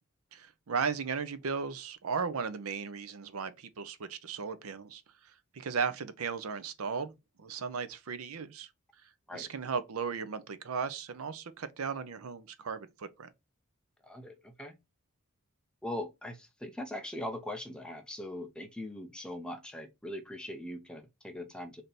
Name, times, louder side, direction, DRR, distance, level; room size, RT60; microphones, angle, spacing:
voice 1, 0.3-5.0 5.5-7.1 7.4-8.7 9.3-13.3, right 5 dB, 80° right, 0.6 m, -36 dB
voice 2, 14.0-14.8 15.8-21.8, left 1 dB, 5° left, 0.6 m, -41 dB
3.3 x 2.8 x 3.9 m
head